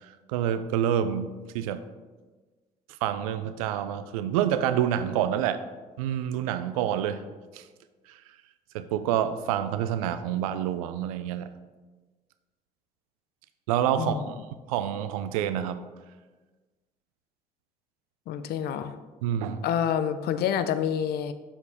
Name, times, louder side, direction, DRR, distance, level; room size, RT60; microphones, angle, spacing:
voice 1, 0.1-1.8 3.0-5.6 6.0-7.2 7.5-7.6 8.1-8.2 8.7-11.5 13.7-14.4 14.7-15.8 19.2-19.6, right 10 dB, 85° right, 11 dB, 0.4 m, -27 dB
voice 2, 14.0-14.3 18.3-19.0 19.6-21.3, left 9 dB, 65° left, 12 dB, 0.5 m, -28 dB
7.3 x 6.6 x 3.5 m, 1.3 s
hypercardioid pair, 55°, 18 cm